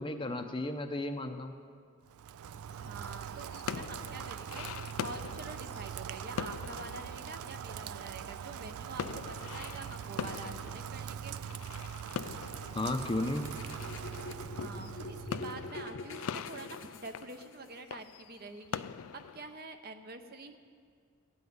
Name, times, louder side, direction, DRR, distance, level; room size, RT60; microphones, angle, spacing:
voice 1, 0.0-1.5 12.7-13.5, left 2 dB, 20° left, 6 dB, 0.6 m, -34 dB
Rain, 2.1-15.9, right 8 dB, 75° right, 0.3 m, -42 dB
sound 1, 2.5-8.7 9.0-19.6, left 7 dB, 70° left, 0.4 m, -43 dB
voice 2, 2.8-11.5 14.6-18.8 19.3-20.6, right 3 dB, 45° right, 7 dB, 0.7 m, -46 dB
sound 2, 12.9-17.8, left 2 dB, 55° left, 0.9 m, -45 dB
16.0 x 5.6 x 9.4 m, 2.1 s
head